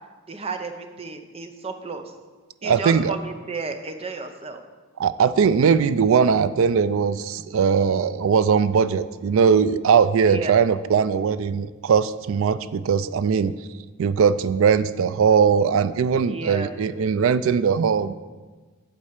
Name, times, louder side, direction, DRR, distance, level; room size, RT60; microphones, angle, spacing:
voice 1, 0.3-2.0 2.6-4.6 10.3-10.5 16.2-16.7, right 3 dB, 30° right, 7 dB, 0.6 m, -32 dB
voice 2, 2.6-3.2 5.0-13.5 14.0-18.1, right 6 dB, 70° right, 15 dB, 0.3 m, -20 dB
8.5 x 4.4 x 6.5 m, 1.3 s
head